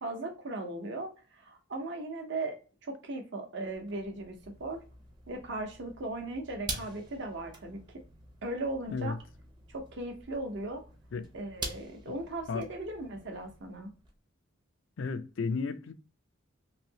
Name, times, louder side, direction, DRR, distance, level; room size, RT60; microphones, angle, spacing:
voice 1, 0.0-2.6 2.8-4.8 5.3-7.8 8.4-9.1 9.7-10.8 11.3-13.9, right 2 dB, 60° right, 0.8 m, -37 dB
sound 1, 3.6-14.1, right 3 dB, 25° right, 0.7 m, -46 dB
voice 2, 15.0-15.9, left 4 dB, 65° left, 0.4 m, -33 dB
3.2 x 2.7 x 2.7 m
head